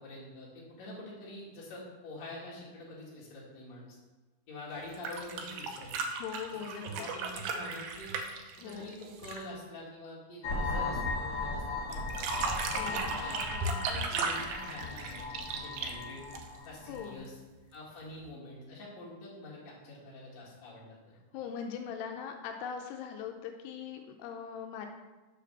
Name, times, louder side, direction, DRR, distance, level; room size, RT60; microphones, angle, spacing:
voice 1, 0.0-4.0 4.5-5.9 6.5-8.1 8.6-12.3 12.8-16.3 16.7-17.4 17.7-21.2, left 2 dB, 45° left, -5 dB, 2.9 m, -46 dB
sound 1, 4.8-9.5 11.9-16.8 18.2-18.3, right 4 dB, 80° right, 2.6 m, -36 dB
voice 2, 6.2-6.8 8.6-8.9 12.7-13.1 16.9-17.3 21.3-24.9, left 7 dB, 85° left, 4 dB, 2.7 m, -40 dB
sound 2, 10.4-17.1, left 3 dB, 70° left, 1.2 m, -37 dB
6.6 x 5.0 x 6.7 m, 1.2 s
omnidirectional pair, 4.6 m